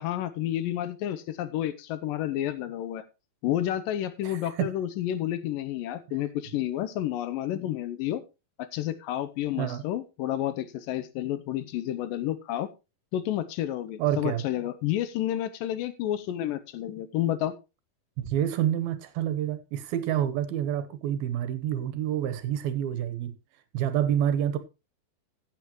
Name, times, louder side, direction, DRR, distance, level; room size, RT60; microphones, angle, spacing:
voice 1, 0.0-3.0 3.4-8.2 8.6-12.7 13.1-17.5, left 12 dB, 75° left, 2.2 m, -30 dB
voice 2, 4.2-4.7 9.6-9.8 14.0-14.4 18.2-23.3 23.7-24.6, right 10 dB, 75° right, 2.8 m, -28 dB
15.0 x 8.8 x 3.0 m
omnidirectional pair, 4.4 m